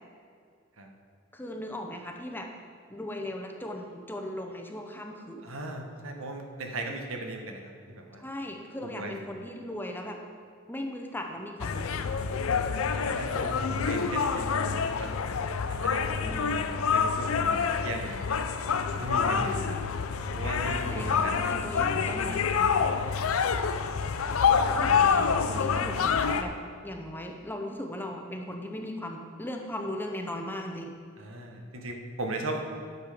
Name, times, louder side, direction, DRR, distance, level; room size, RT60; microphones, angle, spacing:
voice 1, 1.3-2.5 2.9-5.5 8.2-10.2 10.7-12.1 16.2-16.7 19.3-19.9 20.7-22.8 24.7-26.6 26.8-31.0 32.5-32.6, left 1 dB, 10° left, 3 dB, 0.7 m, -38 dB
voice 2, 5.4-8.2 8.8-9.1 12.8-15.2 15.8-18.2 19.0-19.6 20.3-21.6 31.2-32.6, right 2 dB, 70° right, 3 dB, 1.2 m, -37 dB
sound 1, 11.6-26.4, left 6 dB, 85° left, 0.5 m, -27 dB
10.5 x 6.6 x 5.0 m, 2.2 s
head